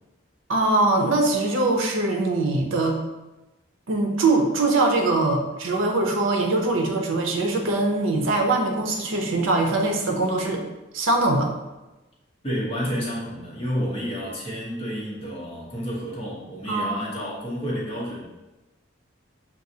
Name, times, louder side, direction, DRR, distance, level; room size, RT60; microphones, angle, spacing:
voice 1, 0.5-3.0 3.9-10.6 10.9-11.5 16.7-17.0, right 2 dB, 80° right, 2 dB, 0.6 m, -22 dB
voice 2, 12.4-18.2, equal, 30° left, -6 dB, 1.0 m, -30 dB
6.0 x 2.4 x 2.7 m, 1.0 s
head